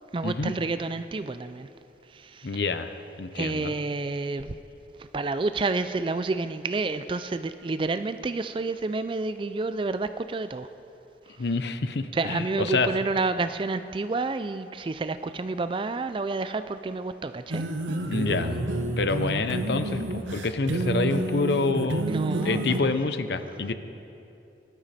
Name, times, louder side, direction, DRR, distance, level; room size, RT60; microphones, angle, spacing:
voice 1, 0.1-1.7 2.1-2.5 3.3-4.6 5.1-10.7 12.1-17.6 22.1-22.9, right 3 dB, 25° right, 11 dB, 0.3 m, -29 dB
voice 2, 2.4-3.7 11.4-12.9 18.1-18.5 19.0-22.1 22.4-23.7, left 3 dB, 65° left, 10 dB, 0.7 m, -27 dB
sound 1, 17.5-22.8, right 2 dB, 85° right, 0.9 m, -29 dB
19.0 x 12.0 x 4.2 m, 2.8 s
head